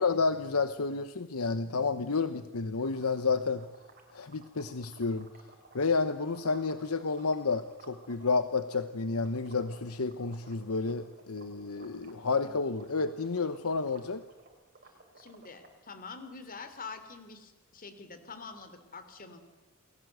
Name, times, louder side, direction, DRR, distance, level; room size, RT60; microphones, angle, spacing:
voice 1, 0.0-3.7 4.1-5.3 5.7-14.2, left 4 dB, 75° left, 11 dB, 1.0 m, -30 dB
sound 1, 2.8-8.8 9.1-15.7, right 3 dB, 45° right, 4.8 m, -56 dB
voice 2, 15.2-19.4, left 4 dB, 40° left, 10 dB, 3.1 m, -45 dB
28.5 x 20.5 x 8.0 m, 1.2 s
head